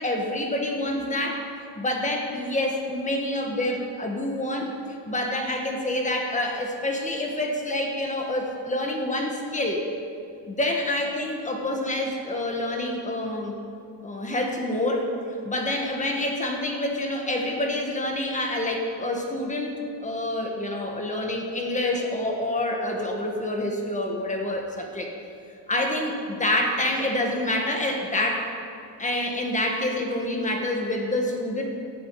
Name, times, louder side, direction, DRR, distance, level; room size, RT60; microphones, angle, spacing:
voice 1, 0.0-1.4 1.7-4.7 5.0-9.9 10.5-13.6 14.0-15.1 15.4-25.1 25.7-28.5 29.0-31.6, left 1 dB, 15° left, 2 dB, 1.5 m, -27 dB
17.5 x 11.0 x 4.8 m, 2.4 s
cardioid pair, 170°, 47 cm